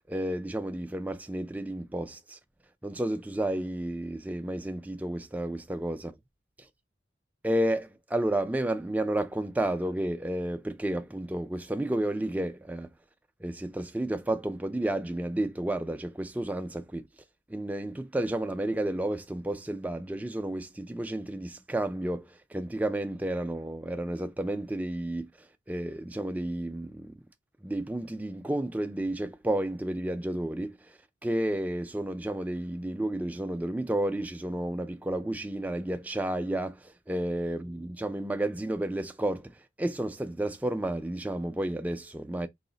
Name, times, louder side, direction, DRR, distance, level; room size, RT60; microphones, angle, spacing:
voice 1, 0.1-2.4 2.8-6.1 7.4-12.9 13.4-17.0 17.5-25.3 25.7-27.1 27.6-30.8 31.2-39.5 39.8-42.5, right 1 dB, 10° right, 0.3 m, -31 dB
4.7 x 2.0 x 3.9 m
head